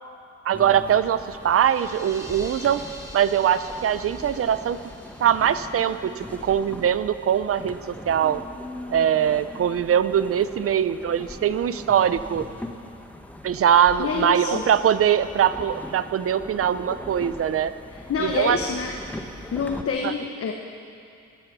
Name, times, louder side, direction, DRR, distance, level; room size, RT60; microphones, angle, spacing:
voice 1, 0.4-2.8 3.1-4.8 5.2-8.4 8.9-12.4 13.4-17.7 18.2-18.6 20.0-20.1, right 9 dB, 50° right, 13 dB, 0.7 m, -22 dB
sound 1, 0.5-19.8, left 1 dB, 5° left, 1.2 m, -40 dB
sound 2, 1.3-7.0, equal, 10° right, 2.4 m, -45 dB
voice 2, 14.0-14.6 17.9-18.9 19.5-20.5, left 5 dB, 50° left, 2 dB, 1.2 m, -27 dB
19.0 x 12.5 x 6.1 m, 2.5 s
cardioid pair, 90°, 30 cm